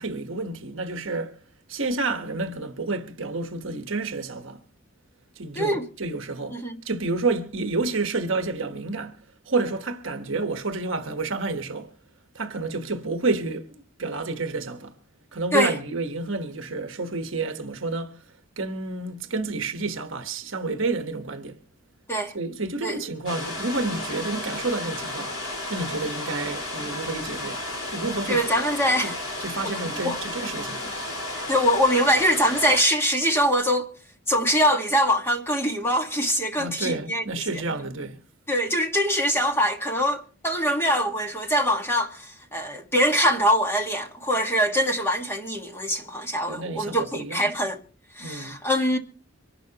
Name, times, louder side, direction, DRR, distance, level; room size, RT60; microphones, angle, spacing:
voice 1, 0.0-1.4 1.7-4.6 5.4-9.2 9.4-11.9 12.3-14.9 15.3-18.2 18.6-21.6 22.3-25.3 25.7-27.6 27.9-28.4 29.0-29.1 29.4-30.9 36.6-38.2 46.5-47.5 48.2-48.6, right 3 dB, 65° right, 1.2 m, -29 dB
voice 2, 5.5-5.9 6.5-6.8 15.5-15.7 22.1-22.3 22.8-23.0 28.3-29.2 29.6-30.2 31.5-33.9 34.3-37.2 37.5-37.6 38.5-47.8 48.1-49.0, equal, 10° left, 1.6 m, -23 dB
sound 1, 23.3-32.8, left 1 dB, 70° left, 5.1 m, -33 dB
25.0 x 11.5 x 2.9 m
head